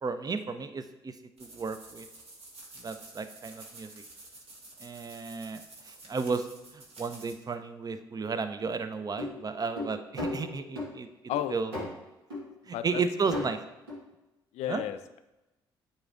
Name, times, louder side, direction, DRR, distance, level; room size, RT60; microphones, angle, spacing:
voice 1, 0.0-2.1 2.8-3.9 4.8-6.5 6.7-11.1 11.5-11.7 12.7-13.6 14.7-14.8, right 4 dB, 30° right, 10 dB, 0.6 m, -33 dB
sound 1, 1.4-7.3, right 2 dB, 55° right, 1.4 m, -50 dB
sound 2, 9.2-10.9 11.3-12.0 12.3-12.5 12.9-13.0 13.3-13.5 13.9-14.0, left 2 dB, 85° right, 1.5 m, -36 dB
voice 2, 12.7-13.5 14.5-15.2, left 11 dB, 60° left, 12 dB, 0.4 m, -34 dB
9.4 x 4.2 x 2.5 m, 1.0 s
hypercardioid pair, 45°, 12 cm